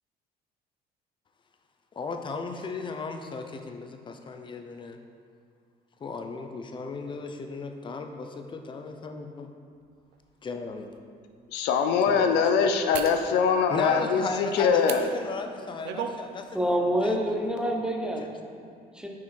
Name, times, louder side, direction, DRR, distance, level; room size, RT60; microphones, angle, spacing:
voice 1, 2.0-5.0 6.0-9.5 10.4-10.9 12.0-12.4 13.7-16.7 17.0-17.2, left 4 dB, 30° left, 5 dB, 0.5 m, -35 dB
sound 1, 10.1-10.2 10.8-11.0 12.9-13.2 14.8-15.0 15.6-16.2 16.6-16.7, right 8 dB, 80° right, 0.5 m, -35 dB
voice 2, 11.5-15.0, left 6 dB, 85° left, 6 dB, 0.5 m, -23 dB
voice 3, 16.5-19.1, equal, 5° right, 1 dB, 0.7 m, -28 dB
6.1 x 4.5 x 4.3 m, 2.2 s
cardioid pair, 110°, 17 cm